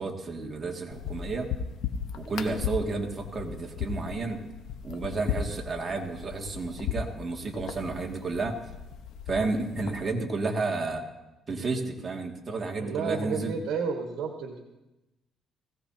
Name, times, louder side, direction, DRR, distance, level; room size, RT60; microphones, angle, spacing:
voice 1, 0.0-1.5 2.1-4.4 4.8-8.6 9.3-11.1 11.5-13.6, right 3 dB, 30° right, 1 dB, 2.2 m, -31 dB
sound 1, 0.9-10.1, left 7 dB, 75° left, 1.1 m, -36 dB
voice 2, 12.8-14.6, right 5 dB, 75° right, 2 dB, 1.6 m, -31 dB
20.5 x 16.0 x 2.9 m, 0.99 s
cardioid pair, 100°, 0 cm